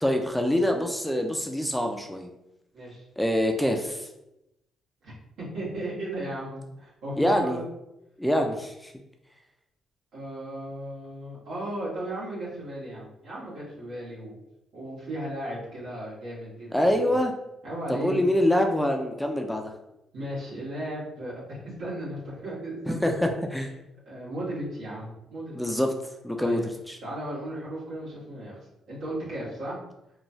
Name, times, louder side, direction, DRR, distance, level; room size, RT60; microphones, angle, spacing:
voice 1, 0.0-2.3 3.2-4.1 7.2-7.6 8.2-8.9 16.7-17.3 17.9-19.7 22.9-23.7 25.5-25.9 26.2-27.0, left 1 dB, 5° left, 3 dB, 0.3 m, -25 dB
voice 2, 5.0-7.6 10.1-14.4 14.7-17.1 17.6-18.2 20.1-23.3 24.1-25.6 26.4-26.6 27.0-28.6 28.9-29.8, right 1 dB, 80° right, -8 dB, 1.4 m, -35 dB
3.0 x 2.2 x 2.6 m, 0.88 s
cardioid pair, 90°, 0 cm